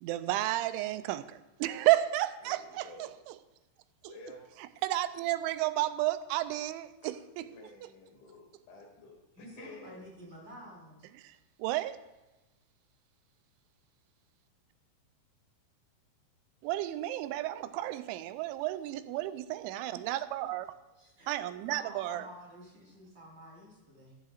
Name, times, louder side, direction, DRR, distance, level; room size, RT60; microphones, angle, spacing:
voice 1, 0.0-3.4 4.0-4.1 4.6-7.5 7.8-7.9 11.2-11.3 11.6-12.0 16.6-20.7 21.3-22.2, right 15 dB, 90° right, 12 dB, 3.0 m, -32 dB
voice 2, 2.4-3.1 4.0-4.5 7.4-10.0, left 2 dB, 85° left, 0 dB, 5.0 m, -51 dB
voice 3, 9.3-11.0 20.9-24.2, equal, 25° right, -4 dB, 4.3 m, -50 dB
15.0 x 14.0 x 2.5 m, 1.1 s
omnidirectional pair, 5.3 m